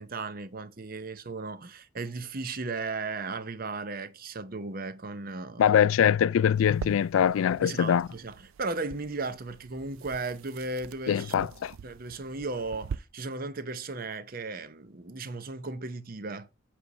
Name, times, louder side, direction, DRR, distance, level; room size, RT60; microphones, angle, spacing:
voice 1, 0.0-5.7 7.6-11.5 11.8-16.5, right 3 dB, 45° right, 0.8 m, -36 dB
voice 2, 5.6-8.1 11.1-11.7, left 8 dB, 85° left, 0.3 m, -23 dB
sound 1, 6.5-13.0, right 6 dB, 85° right, 0.4 m, -44 dB
8.3 x 3.4 x 6.1 m
head